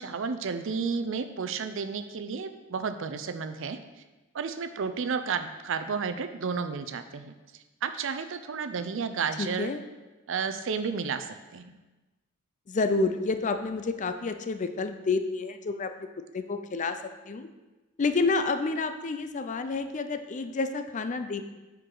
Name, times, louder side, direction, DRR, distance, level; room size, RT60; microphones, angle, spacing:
voice 1, 0.0-3.8 4.3-9.7 10.3-11.7, right 5 dB, 65° right, 9 dB, 0.5 m, -32 dB
voice 2, 9.4-9.8 12.7-15.9 16.3-17.0 17.3-17.5 18.0-21.4, left 3 dB, 35° left, 8 dB, 0.4 m, -29 dB
9.0 x 4.7 x 3.9 m, 1.2 s
head